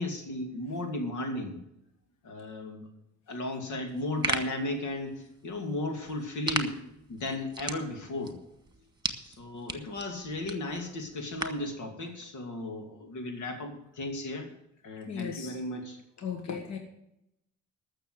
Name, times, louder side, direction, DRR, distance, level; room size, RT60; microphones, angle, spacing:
voice 1, 0.0-1.6 2.2-2.8 3.3-6.8 7.1-8.4 9.2-14.5 14.8-16.0, left 2 dB, 90° left, 4 dB, 2.6 m, -35 dB
sound 1, 3.9-11.7, right 3 dB, 15° right, 1.6 m, -38 dB
voice 2, 15.1-15.5 16.2-16.8, left 7 dB, 60° left, 4 dB, 1.6 m, -36 dB
13.5 x 6.7 x 7.9 m, 0.83 s
cardioid pair, 90°, 30 cm